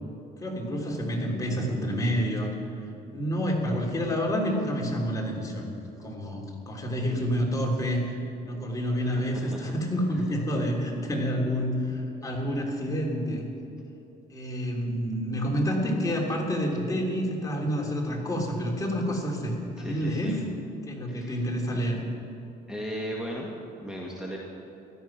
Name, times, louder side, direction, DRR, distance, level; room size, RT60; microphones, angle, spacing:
voice 1, 0.4-2.5 3.1-5.7 6.0-13.4 14.3-20.4 20.9-22.0, equal, 20° left, -1 dB, 3.2 m, -28 dB
voice 2, 9.0-9.7 19.8-20.4 21.1-21.4 22.7-24.4, equal, 5° right, -2 dB, 1.9 m, -37 dB
16.5 x 13.0 x 6.0 m, 3.0 s
cardioid pair, 110°, 17 cm